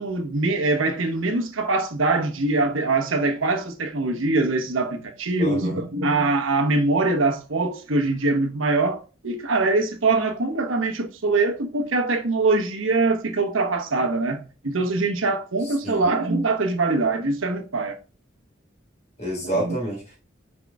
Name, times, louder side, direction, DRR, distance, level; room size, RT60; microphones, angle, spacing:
voice 1, 0.0-18.0 19.5-19.8, right 3 dB, 85° right, 1.1 m, -23 dB
voice 2, 5.4-5.8 15.8-16.0 19.2-20.2, right 1 dB, 35° left, 3.5 m, -28 dB
6.2 x 4.9 x 3.5 m
head